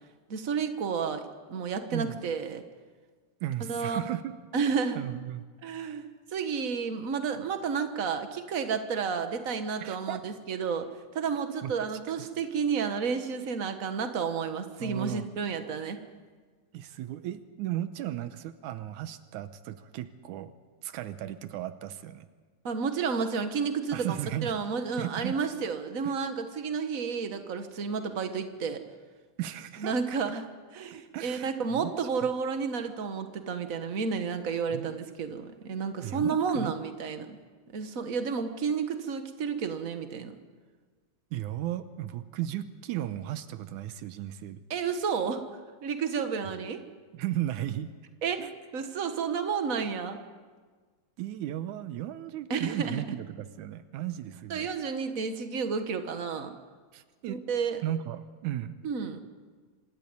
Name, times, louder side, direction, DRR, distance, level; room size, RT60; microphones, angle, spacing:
voice 1, 0.3-1.2 1.5-2.6 3.7-4.0 4.5-5.0 5.6-6.1 6.3-10.9 11.1-16.0 22.6-24.2 24.4-28.8 29.8-30.5 30.7-37.4 37.7-40.4 44.7-45.4 45.8-46.8 48.2-48.5 48.7-50.2 52.5-53.0 54.5-56.5 57.3-57.8 58.8-59.2, right 6 dB, 55° right, 8 dB, 0.9 m, -31 dB
voice 2, 1.9-2.2 3.4-4.3 5.0-6.0 9.8-10.2 11.6-11.7 14.8-15.3 16.7-20.5 20.8-22.3 23.9-24.5 25.0-25.4 29.4-30.0 30.9-31.9 32.2-32.3 34.7-34.9 36.0-36.7 41.3-44.6 47.1-47.9 48.4-48.5 51.2-54.7 56.9-57.4 57.8-58.8, right 12 dB, 85° right, 11 dB, 2.3 m, -35 dB
26.0 x 13.0 x 9.6 m, 1.5 s
omnidirectional pair, 3.4 m